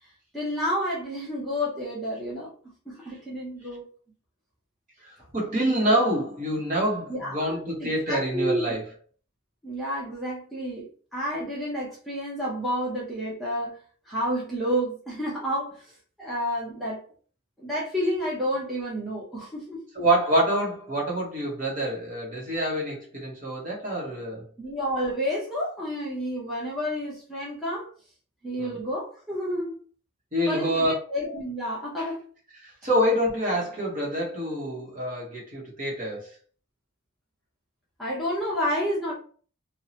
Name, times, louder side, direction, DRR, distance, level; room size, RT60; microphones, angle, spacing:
voice 1, 0.3-2.5 2.9-3.9 7.1-8.6 9.6-13.8 14.1-15.9 16.2-17.0 17.6-19.8 24.6-27.9 28.4-29.8 30.5-32.2 38.0-39.1, equal, ahead, -7 dB, 0.6 m, -30 dB
voice 2, 5.0-8.9 19.9-24.5 28.6-28.8 30.3-30.9 32.0-32.1 32.6-36.3, right 1 dB, 40° right, -3 dB, 1.0 m, -26 dB
2.7 x 2.0 x 2.7 m, 0.43 s
head